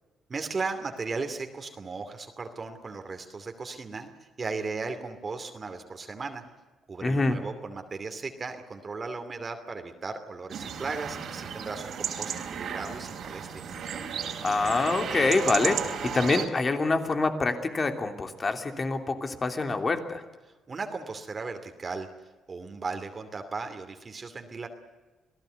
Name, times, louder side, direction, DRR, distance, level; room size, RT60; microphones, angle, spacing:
voice 1, 0.3-6.4 6.9-13.5 20.4-22.1 22.5-24.7, right 4 dB, 35° right, 6 dB, 2.6 m, -36 dB
voice 2, 7.0-7.4 14.4-20.2, left 3 dB, 35° left, 6 dB, 3.1 m, -26 dB
sound 1, 10.5-16.5, right 7 dB, 65° right, 3.8 m, -34 dB
27.5 x 18.0 x 8.2 m, 1.2 s
cardioid pair, 90°, 0 cm